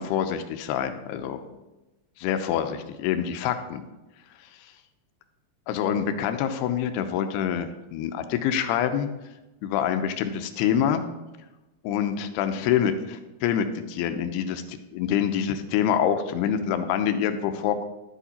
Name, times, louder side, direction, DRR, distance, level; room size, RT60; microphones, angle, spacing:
voice 1, 0.0-1.4 2.2-3.8 5.7-9.1 9.6-11.0 11.8-17.8, left 9 dB, 85° left, 8 dB, 2.7 m, -26 dB
11.5 x 8.4 x 4.3 m, 1.0 s
omnidirectional pair, 4.6 m